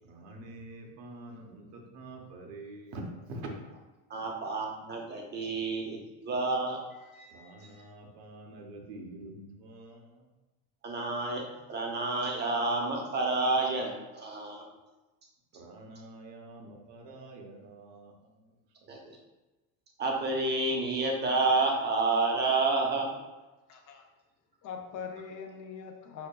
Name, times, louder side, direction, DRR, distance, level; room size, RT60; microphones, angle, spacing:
voice 1, 0.0-3.5 4.1-4.2 7.3-10.2 15.5-18.5 18.8-18.9, right 2 dB, 65° right, 2 dB, 1.0 m, -46 dB
voice 2, 4.1-7.3 7.6-7.7 10.8-11.4 11.7-14.6 18.9-19.2 20.0-23.1, right 3 dB, 20° right, 1 dB, 0.7 m, -29 dB
voice 3, 23.7-24.1 24.6-26.3, left 6 dB, 40° left, 3 dB, 0.6 m, -42 dB
5.8 x 2.2 x 2.2 m, 1.1 s
supercardioid pair, 115°, 46 cm